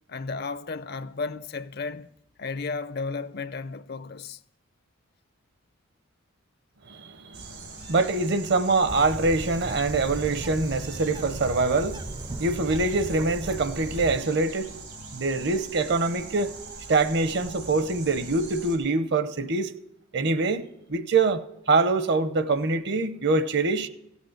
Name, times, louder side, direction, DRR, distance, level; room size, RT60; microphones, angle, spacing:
voice 1, 0.1-2.1 2.4-4.4, left 4 dB, 50° left, 0.5 m, -33 dB
voice 2, 6.9-14.8 15.1-16.6 16.9-19.7 20.1-20.6 20.9-23.9, right 3 dB, 50° right, 0.7 m, -24 dB
sound 1, 7.3-18.8, right 4 dB, 85° right, 2.7 m, -42 dB
Bird, 8.9-14.2, right 2 dB, 20° right, 0.4 m, -37 dB
16.0 x 8.3 x 6.6 m
head